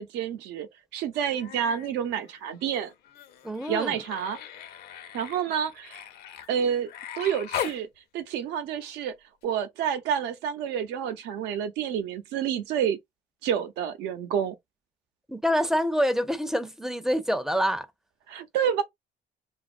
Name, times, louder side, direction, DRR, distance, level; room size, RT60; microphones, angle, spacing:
voice 1, 0.0-2.9 3.7-4.4 5.1-6.0 6.5-7.9 8.1-9.1 9.4-13.0 13.4-14.6 18.3-18.8, right 8 dB, 90° right, 0.7 m, -29 dB
Human voice, 1.1-1.9 2.2-7.8 9.4-9.5, left 9 dB, 70° left, 0.6 m, -39 dB
voice 2, 3.4-4.0 15.3-17.9, equal, 5° right, 0.4 m, -26 dB
2.9 x 2.4 x 2.4 m
cardioid pair, 110°, 17 cm